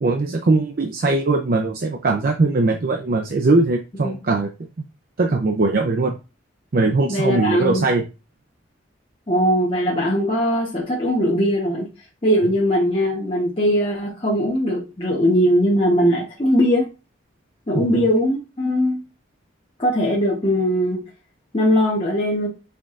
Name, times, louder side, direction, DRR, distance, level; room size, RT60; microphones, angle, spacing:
voice 1, 0.0-4.5 5.2-6.2 6.7-8.0 17.7-18.1, right 3 dB, 45° right, 4 dB, 0.4 m, -20 dB
voice 2, 7.1-7.9 9.3-11.9 12.2-16.8 17.7-19.0 19.8-21.0 21.5-22.5, equal, 30° left, -4 dB, 1.0 m, -20 dB
5.9 x 3.6 x 2.5 m, 0.30 s
head